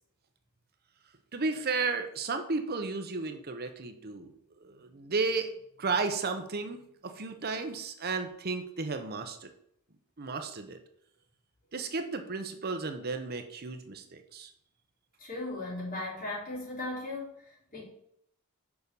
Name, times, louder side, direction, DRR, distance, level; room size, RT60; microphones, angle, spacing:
voice 1, 1.3-4.3 4.6-5.5 5.8-9.5 10.2-10.8 11.7-14.5, right 4 dB, 45° right, 7 dB, 0.8 m, -33 dB
voice 2, 15.2-17.8, left 2 dB, 40° left, -5 dB, 4.0 m, -37 dB
6.9 x 5.3 x 6.9 m, 0.72 s
head